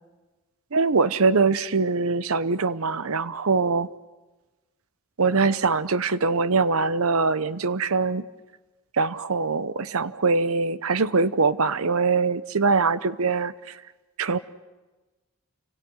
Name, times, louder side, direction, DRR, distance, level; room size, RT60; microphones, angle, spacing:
voice 1, 0.7-3.9 5.2-8.3 8.9-13.8 14.2-14.4, right 4 dB, 75° right, 16 dB, 0.8 m, -23 dB
30.0 x 25.5 x 6.4 m, 1.2 s
head